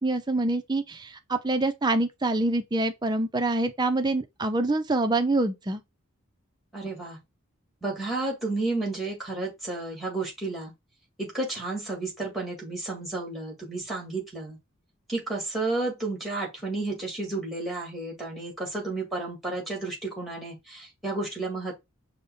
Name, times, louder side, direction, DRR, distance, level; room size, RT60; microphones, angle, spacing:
voice 1, 0.0-5.8, right 2 dB, 20° right, 0.4 m, -26 dB
voice 2, 6.7-7.2 7.8-10.7 11.2-14.6 15.1-21.7, right 2 dB, ahead, 1.6 m, -32 dB
5.3 x 2.1 x 4.0 m
head